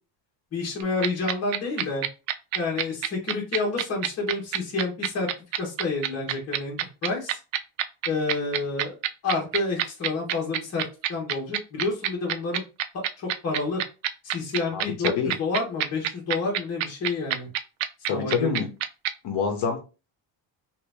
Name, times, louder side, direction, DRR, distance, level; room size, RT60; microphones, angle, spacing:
voice 1, 0.5-2.1 2.5-5.3 5.6-7.4 8.0-9.0 9.2-10.8 11.1-12.6 13.2-13.8 14.2-17.5 18.1-18.6, left 3 dB, 35° left, 1.3 m, -29 dB
sound 1, 0.8-19.1, right 12 dB, 75° right, 0.5 m, -26 dB
voice 2, 14.7-15.3 18.1-18.7 19.2-19.8, left 6 dB, 55° left, 1.0 m, -26 dB
2.9 x 2.6 x 3.4 m
cardioid pair, 155°, 46 cm